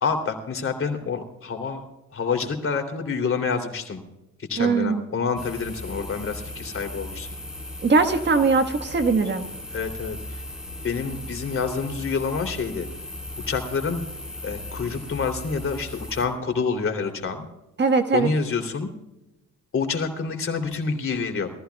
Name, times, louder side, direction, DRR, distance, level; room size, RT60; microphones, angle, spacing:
voice 1, 0.0-1.8 2.1-4.0 4.5-7.3 9.7-10.4 10.8-12.9 13.5-14.0 14.4-17.4 18.1-18.9 19.7-21.5, left 5 dB, 45° left, 5 dB, 3.1 m, -27 dB
voice 2, 4.6-5.0 7.8-9.5 17.8-18.3, right 4 dB, 35° right, 7 dB, 1.4 m, -20 dB
sound 1, 5.4-16.3, left 1 dB, ahead, 4.6 m, -37 dB
23.0 x 14.5 x 2.3 m, 0.92 s
cardioid pair, 90°, 30 cm